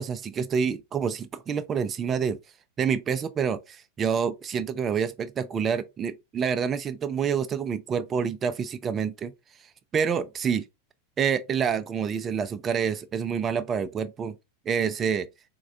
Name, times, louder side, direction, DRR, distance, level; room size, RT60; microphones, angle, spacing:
voice 1, 0.0-2.4 2.8-9.3 9.9-10.7 11.2-14.4 14.7-15.3, right 7 dB, 25° right, 0.4 m, -27 dB
4.0 x 2.2 x 2.4 m
figure-of-eight pair, 90°, 0 cm